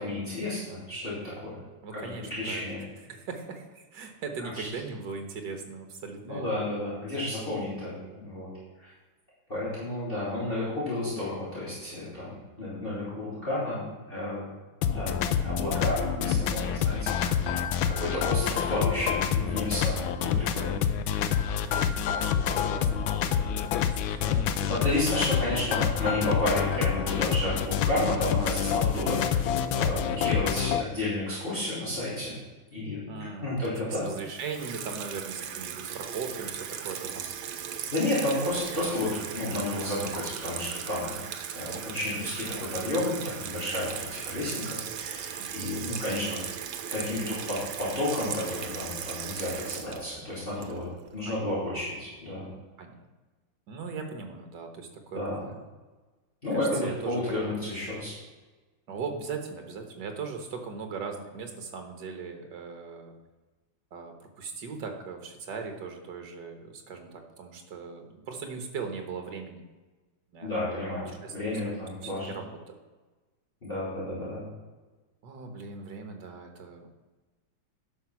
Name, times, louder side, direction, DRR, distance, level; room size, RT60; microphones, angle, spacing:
voice 1, 0.0-1.6 1.9-2.8 4.6-4.7 6.2-8.5 8.8-8.9 9.5-14.5 14.8-17.6 17.9-20.8 24.2-24.4 24.7-29.4 29.7-32.3 32.7-33.0 33.4-34.1 37.9-41.1 41.5-46.4 46.9-52.5 55.1-55.5 56.4-58.1 70.4-72.3 73.6-74.5, left 1 dB, 25° left, -10 dB, 3.6 m, -31 dB
voice 2, 1.8-2.6 3.0-6.7 17.8-18.2 21.6-23.0 23.8-24.7 28.9-29.3 33.1-33.6 33.9-37.3 44.1-44.2 45.4-45.7 51.3-51.5 52.8-53.0 53.7-55.5 56.5-57.3 58.9-63.2 63.9-69.6 70.3-70.6 71.1-71.4 71.6-72.8 75.2-76.9, right 5 dB, 60° right, 4 dB, 1.9 m, -39 dB
sound 1, 14.8-30.8, left 8 dB, 85° left, 1.4 m, -27 dB
Water tap faucet / Sink (filling or washing), 34.4-51.1, right 8 dB, 75° right, 1.6 m, -37 dB
10.5 x 6.2 x 6.0 m, 1.2 s
omnidirectional pair, 2.1 m